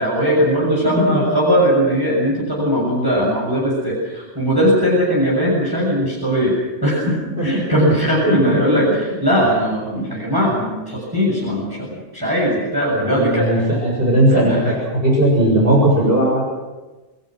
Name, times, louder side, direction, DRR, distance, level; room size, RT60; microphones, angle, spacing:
voice 1, 0.0-7.2 7.4-13.5 14.3-14.7, equal, 20° right, -5 dB, 7.1 m, -19 dB
voice 2, 12.9-14.7 15.0-16.4, right 1 dB, 55° right, -3 dB, 7.3 m, -17 dB
28.5 x 20.5 x 6.3 m, 1.2 s
omnidirectional pair, 1.2 m